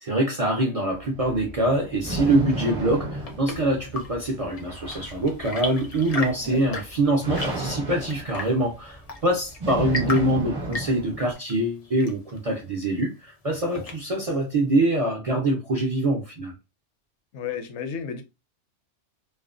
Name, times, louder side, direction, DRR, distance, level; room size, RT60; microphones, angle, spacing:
voice 1, 0.0-16.5, right 1 dB, 55° right, 0.4 m, -24 dB
sound 1, 0.9-11.3, right 1 dB, 35° right, 0.8 m, -34 dB
Chirp tweet / Engine / Tap, 2.8-14.3, left 2 dB, 50° left, 0.5 m, -37 dB
voice 2, 17.3-18.2, left 6 dB, 80° left, 0.9 m, -33 dB
2.4 x 2.1 x 2.4 m
omnidirectional pair, 1.2 m